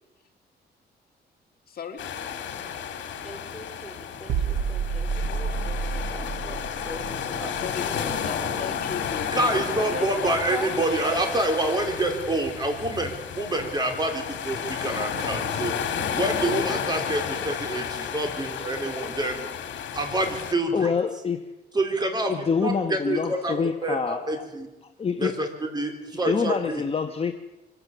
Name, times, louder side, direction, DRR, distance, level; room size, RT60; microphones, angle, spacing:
voice 1, 1.7-2.2 7.5-10.4, left 6 dB, 55° left, 6 dB, 2.1 m, -37 dB
sound 1, 2.0-20.5, left 7 dB, 80° left, 2.2 m, -32 dB
voice 2, 3.2-8.0 9.8-11.0, left 1 dB, ahead, 4 dB, 3.9 m, -40 dB
sound 2, 4.3-10.0 10.3-10.5, right 5 dB, 80° right, 1.4 m, -31 dB
voice 3, 9.3-15.7 16.1-19.4 19.9-20.9 21.7-22.3 22.6-24.7 25.2-26.8, right 2 dB, 20° right, 4 dB, 3.7 m, -27 dB
voice 4, 18.5-19.1 20.7-21.4 22.3-24.5 25.0-25.3 26.2-27.4, left 6 dB, 30° left, 6 dB, 1.1 m, -27 dB
24.0 x 16.5 x 7.3 m, 1.0 s
cardioid pair, 130°, 19 cm